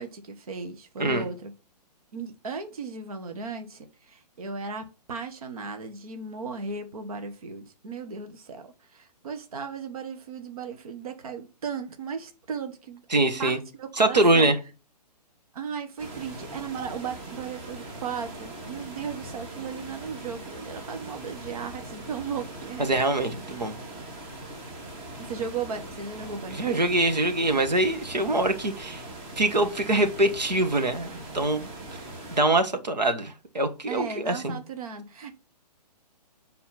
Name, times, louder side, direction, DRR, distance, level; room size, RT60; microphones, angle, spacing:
voice 1, 0.0-1.5 2.1-14.5 15.5-22.9 25.2-26.8 33.9-35.3, right 5 dB, 60° right, 1.5 m, -36 dB
voice 2, 13.1-13.6 14.0-14.6 22.8-23.8 26.5-29.0 29.4-31.7 32.3-34.6, right 2 dB, 80° right, 1.7 m, -24 dB
sound 1, 16.0-32.4, right 1 dB, 25° right, 2.4 m, -41 dB
10.0 x 4.3 x 5.8 m
figure-of-eight pair, 130°, 21 cm